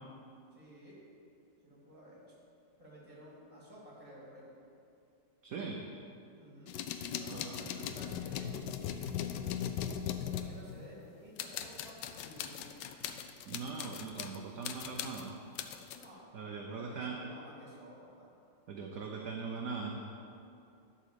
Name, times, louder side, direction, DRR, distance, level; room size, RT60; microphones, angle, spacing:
voice 1, 0.5-1.0 1.6-2.2 2.8-4.5 6.4-6.7 7.1-9.4 10.3-12.8 15.9-16.3 16.7-18.3, equal, 15° right, -5 dB, 2.2 m, -53 dB
voice 2, 5.4-5.8 7.3-7.6 13.5-15.4 16.3-17.2 18.7-20.0, right 5 dB, 60° right, 1 dB, 1.0 m, -40 dB
sound 1, 6.7-11.1 11.4-14.4 14.6-16.1, left 9 dB, 75° left, 1.2 m, -39 dB
11.5 x 4.3 x 6.7 m, 2.6 s
omnidirectional pair, 2.1 m